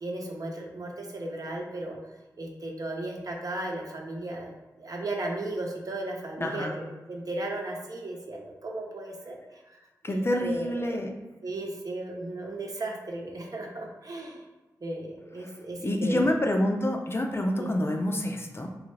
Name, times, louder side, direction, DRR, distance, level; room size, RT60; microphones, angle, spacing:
voice 1, 0.0-2.0 2.4-9.6 10.0-11.0 11.4-14.4 14.8-16.3 17.6-17.7, right 2 dB, 55° right, -1 dB, 0.8 m, -35 dB
voice 2, 6.4-6.7 10.0-11.1 15.4-15.6 15.8-18.7, left 1 dB, 35° left, 3 dB, 0.5 m, -27 dB
3.1 x 2.4 x 3.1 m, 1.2 s
cardioid pair, 40°, 7 cm